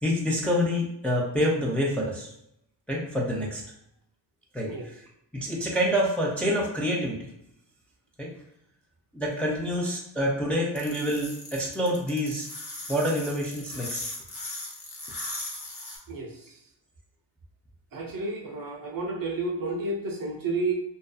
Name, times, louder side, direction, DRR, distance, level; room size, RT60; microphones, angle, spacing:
voice 1, 0.0-2.3 2.9-3.6 4.5-4.7 5.3-7.3 8.2-8.3 9.1-12.5 12.9-14.0, equal, 5° left, -3 dB, 0.4 m, -27 dB
sound 1, 10.8-16.0, left 2 dB, 30° left, 0.8 m, -38 dB
voice 2, 16.1-16.6 17.9-20.7, right 3 dB, 45° right, 1 dB, 0.7 m, -31 dB
2.6 x 2.3 x 2.3 m, 0.78 s
cardioid pair, 70°, 46 cm